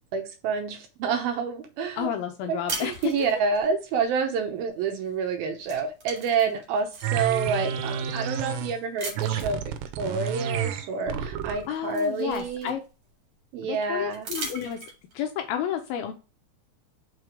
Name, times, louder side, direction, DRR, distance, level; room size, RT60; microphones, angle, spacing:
voice 1, 0.1-2.1 2.5-9.6 10.0-12.8 13.5-14.3, right 5 dB, 75° right, 5 dB, 2.4 m, -28 dB
voice 2, 2.0-3.1 11.7-12.8 13.6-14.8 15.1-16.1, left 9 dB, 80° left, 5 dB, 2.3 m, -31 dB
sound 1, 2.7-3.7 5.1-5.3 5.6-7.2 7.8-7.9 9.0-9.6 11.0-11.1 11.5-13.0 14.1-15.2, right 3 dB, 45° right, 2.4 m, -38 dB
sound 2, 7.0-8.8 9.2-11.7, right 7 dB, 90° right, 2.9 m, -30 dB
5.9 x 4.7 x 4.8 m, 0.32 s
omnidirectional pair, 4.8 m